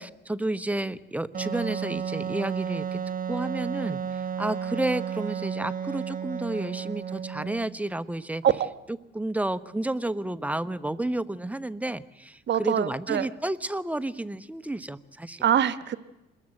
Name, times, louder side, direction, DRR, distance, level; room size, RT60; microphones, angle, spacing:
voice 1, 0.0-3.0 3.3-8.4 8.9-15.4, right 1 dB, 5° right, 14 dB, 1.2 m, -31 dB
Wind instrument woodwind instrument, 1.3-7.8, right 8 dB, 45° right, 1.4 m, -33 dB
voice 2, 12.5-13.3 15.4-16.0, right 9 dB, 60° right, 13 dB, 1.3 m, -24 dB
27.5 x 21.5 x 7.9 m, 0.97 s
cardioid pair, 90°, 20 cm